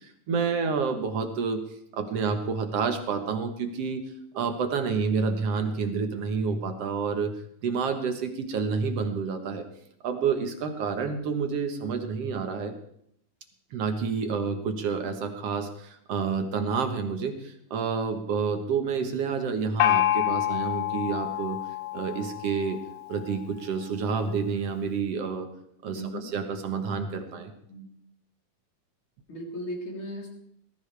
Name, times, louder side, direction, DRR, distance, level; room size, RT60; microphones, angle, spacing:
voice 1, 0.3-1.7 1.9-4.0 4.3-9.6 10.0-12.7 13.7-21.6 21.9-22.8 23.1-25.5 25.8-27.5, right 5 dB, 60° right, 6 dB, 1.8 m, -29 dB
Gong, 19.8-23.3, left 13 dB, 75° left, 2.0 m, -27 dB
voice 2, 25.9-26.3 27.4-27.9 29.3-30.3, equal, 35° left, -1 dB, 4.2 m, -37 dB
18.5 x 15.5 x 3.4 m, 0.72 s
omnidirectional pair, 4.0 m